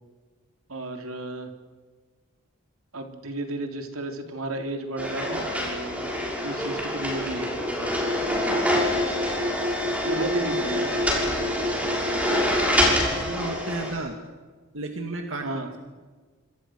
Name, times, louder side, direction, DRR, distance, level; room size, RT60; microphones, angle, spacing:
voice 1, 0.7-1.5 2.9-6.1 6.4-7.5 7.8-7.9 10.0-11.2 15.4-15.7, right 2 dB, 80° right, 5 dB, 3.5 m, -33 dB
sound 1, 5.0-13.9, left 1 dB, 5° right, 6.5 m, -25 dB
voice 2, 13.0-14.1 14.7-15.5, right 2 dB, 65° right, 4 dB, 2.2 m, -33 dB
27.5 x 25.0 x 6.4 m, 1.4 s
head